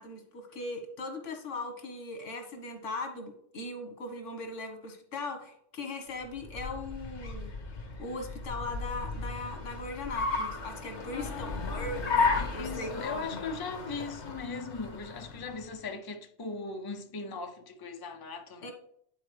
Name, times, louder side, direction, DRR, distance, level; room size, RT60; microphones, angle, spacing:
voice 1, 0.0-7.5 8.0-12.0 12.5-13.4 18.6-18.7, left 2 dB, 85° left, 1.6 m, -39 dB
Car, 6.2-15.7, left 4 dB, 70° left, 1.5 m, -34 dB
voice 2, 11.1-18.7, left 4 dB, 25° left, 0.5 m, -39 dB
10.0 x 4.4 x 3.3 m
omnidirectional pair, 1.2 m